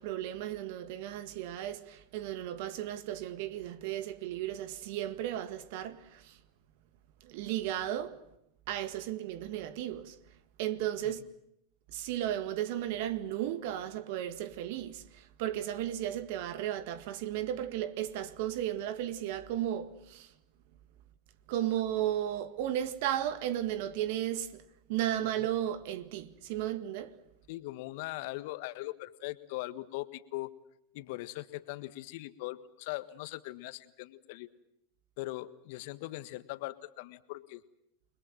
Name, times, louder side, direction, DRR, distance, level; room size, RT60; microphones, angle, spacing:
voice 1, 0.0-6.4 7.2-8.2 8.7-10.2 10.6-11.2 11.9-20.3 21.5-27.2, right 12 dB, 60° right, 1.8 m, -34 dB
voice 2, 27.5-30.5 30.9-34.5 35.2-37.6, left 18 dB, 60° left, 1.5 m, -40 dB
29.5 x 22.0 x 7.5 m
hypercardioid pair, 95°, 0 cm